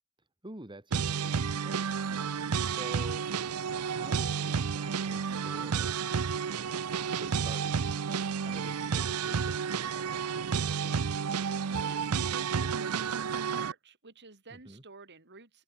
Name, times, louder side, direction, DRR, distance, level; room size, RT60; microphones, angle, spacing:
voice 1, 0.4-2.0 2.6-3.3 3.8-5.9 7.1-11.2 14.5-14.8, right 1 dB, 20° right, 3.1 m, -49 dB
sound 1, 0.9-13.7, right 6 dB, 90° right, 0.6 m, -31 dB
voice 2, 11.7-15.6, right 3 dB, 55° right, 3.2 m, -49 dB
head